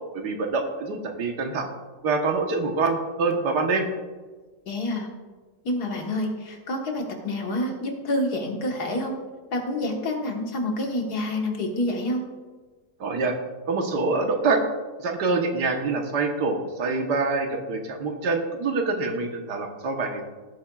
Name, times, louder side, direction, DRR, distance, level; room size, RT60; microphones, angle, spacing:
voice 1, 0.1-1.7 2.0-3.9 13.0-13.4 13.7-14.6 15.0-20.3, right 3 dB, 80° right, 3 dB, 1.8 m, -25 dB
voice 2, 4.7-5.1 5.6-9.2 9.5-12.3, left 1 dB, 70° left, 2 dB, 2.0 m, -28 dB
16.5 x 8.6 x 2.4 m, 1.3 s
omnidirectional pair, 1.8 m